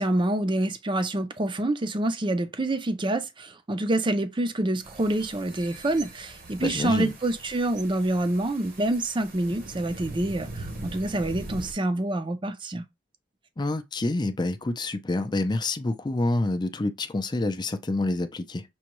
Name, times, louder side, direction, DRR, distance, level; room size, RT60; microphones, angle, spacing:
voice 1, 0.0-12.8, right 1 dB, 30° right, 0.5 m, -27 dB
sound 1, 4.8-11.7, right 2 dB, 55° right, 1.0 m, -42 dB
sound 2, 5.2-7.4 7.7-8.0 8.8-8.9, right 5 dB, 75° right, 1.3 m, -48 dB
voice 2, 6.6-7.1 13.6-18.6, left 2 dB, 25° left, 0.5 m, -27 dB
6.2 x 2.3 x 3.0 m
head